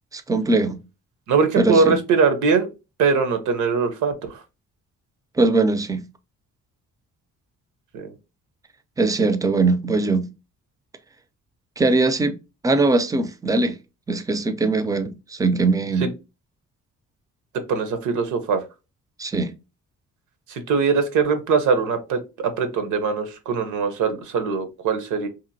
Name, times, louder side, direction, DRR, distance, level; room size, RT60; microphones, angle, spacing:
voice 1, 0.1-0.8 1.6-2.0 5.4-6.0 9.0-10.3 11.8-12.4 12.6-13.8 14.1-16.1 19.2-19.5, right 3 dB, 10° right, 0.3 m, -21 dB
voice 2, 1.3-2.7 3.0-4.4 7.9-8.1 16.0-16.1 17.7-18.6 20.5-25.3, right 5 dB, 80° right, 0.7 m, -21 dB
2.9 x 2.5 x 2.6 m
cardioid pair, 90°, 30 cm